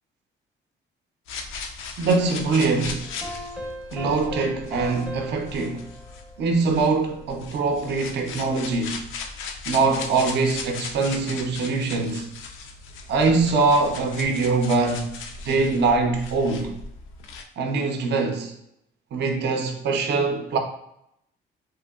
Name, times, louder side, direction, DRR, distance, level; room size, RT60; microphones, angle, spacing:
sound 1, 1.3-17.4, left 4 dB, 85° left, 0.4 m, -38 dB
voice 1, 2.0-3.1 3.9-5.9 6.4-9.0 9.7-12.3 13.1-15.1 15.4-16.7 17.6-18.5 19.1-20.6, right 3 dB, 60° right, 0.5 m, -23 dB
sound 2, 3.0-7.2, left 1 dB, 5° right, 0.5 m, -38 dB
3.0 x 2.7 x 2.3 m
cardioid pair, 90°, 20 cm